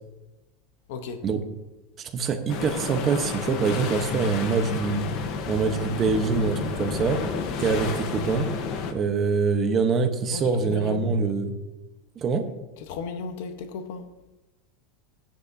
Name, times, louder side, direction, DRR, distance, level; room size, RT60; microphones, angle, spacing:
voice 1, 0.9-1.3 10.3-11.1 12.8-14.1, left 4 dB, 60° left, 1.0 m, -35 dB
voice 2, 2.0-5.0 5.5-7.2 7.6-8.5 8.9-11.5 12.2-12.4, right 5 dB, 25° right, 1.0 m, -24 dB
sound 1, 2.5-8.9, left 5 dB, 40° left, 1.0 m, -31 dB
15.0 x 10.0 x 2.7 m
supercardioid pair, 170°, 0 cm